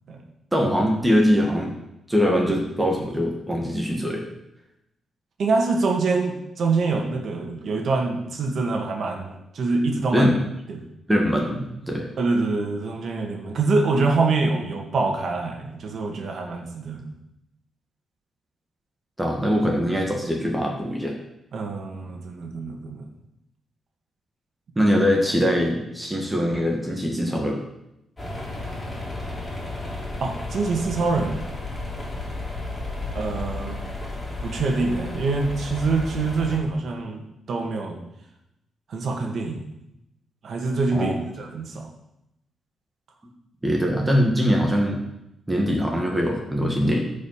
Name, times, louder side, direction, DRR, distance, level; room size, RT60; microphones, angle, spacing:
voice 1, 0.5-1.7 2.1-4.2 10.1-10.4 11.1-12.1 19.2-21.2 24.8-27.6 40.9-41.3 43.6-45.0 45.5-47.1, equal, 10° right, 0 dB, 1.7 m, -22 dB
voice 2, 5.4-10.3 10.7-10.8 12.2-17.1 21.5-23.1 30.2-31.4 33.1-33.8 34.4-38.0 38.9-39.6 40.4-41.9, right 3 dB, 55° right, 2 dB, 2.0 m, -25 dB
sound 1, 28.2-36.6, left 2 dB, 20° left, 2.9 m, -33 dB
14.0 x 5.3 x 5.8 m, 0.84 s
cardioid pair, 140°, 0 cm